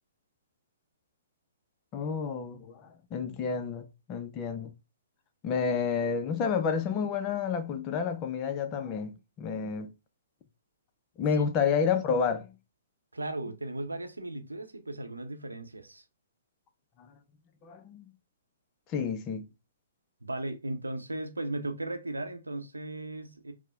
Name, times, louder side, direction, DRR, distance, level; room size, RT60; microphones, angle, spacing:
voice 1, 1.9-4.7 5.4-9.9 11.2-12.5 17.0-17.1 17.6-18.1 18.9-19.5, left 6 dB, 30° left, 0.5 m, -30 dB
voice 2, 13.1-16.0 20.2-23.5, right 2 dB, 85° right, 0.6 m, -36 dB
4.3 x 2.1 x 2.3 m
figure-of-eight pair, 120°, 0 cm